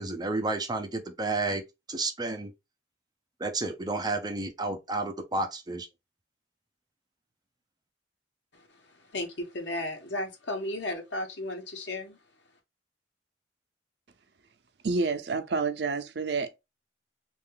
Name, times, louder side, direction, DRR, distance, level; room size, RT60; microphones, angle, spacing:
voice 1, 0.0-1.6 1.9-2.5 3.4-5.9, right 2 dB, 20° right, 0.7 m, -31 dB
voice 2, 8.5-12.2, left 1 dB, 80° left, 1.1 m, -35 dB
voice 3, 14.8-16.6, right 4 dB, 65° right, 0.6 m, -29 dB
3.3 x 2.5 x 3.7 m
head